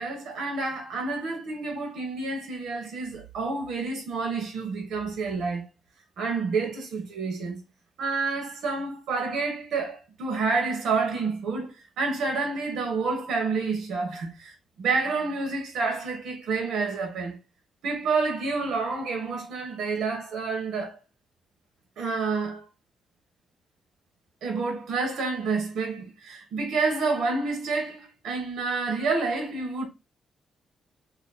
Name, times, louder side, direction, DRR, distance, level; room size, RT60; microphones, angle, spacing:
voice 1, 0.0-5.6 6.2-7.6 8.0-17.4 17.8-21.0 22.0-22.6 24.4-29.9, right 4 dB, 80° right, 1.3 m, -29 dB
2.9 x 2.9 x 4.1 m
wide cardioid pair, 175°, 0 cm